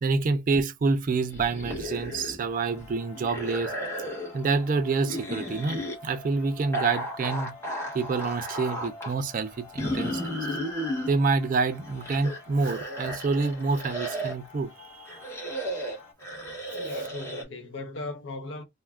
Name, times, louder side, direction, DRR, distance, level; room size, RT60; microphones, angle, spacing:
voice 1, 0.0-3.8 4.3-7.5 7.9-10.4 11.1-15.2, right 4 dB, 40° right, 0.3 m, -27 dB
sound 1, 1.3-2.5 2.7-4.4 5.0-6.0 6.7-9.1 9.8-11.1 11.7-14.5 15.1-17.4, equal, 15° left, 0.8 m, -34 dB
sound 2, 2.5-16.1, left 3 dB, 85° left, 0.9 m, -49 dB
voice 2, 16.7-18.6, left 2 dB, 60° left, 0.6 m, -38 dB
2.3 x 2.1 x 3.2 m
head